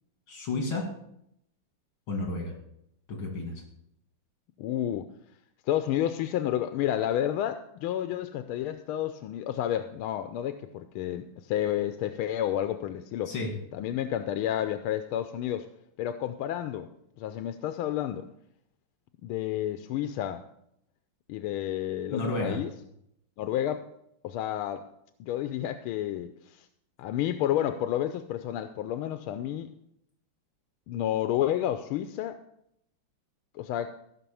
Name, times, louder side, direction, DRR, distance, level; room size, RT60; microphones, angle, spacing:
voice 1, 0.3-0.9 2.1-2.5 3.1-3.6 13.3-13.5 22.1-22.6, left 2 dB, 75° left, 1 dB, 3.0 m, -31 dB
voice 2, 4.6-5.1 5.7-13.3 13.7-15.7 16.0-16.9 17.2-18.2 19.2-20.4 21.3-22.7 23.4-23.8 24.2-24.9 25.2-26.7 27.0-29.7 30.9-32.4 33.5-33.9, left 11 dB, 90° left, 9 dB, 1.5 m, -30 dB
15.5 x 6.0 x 7.0 m, 0.75 s
omnidirectional pair, 2.3 m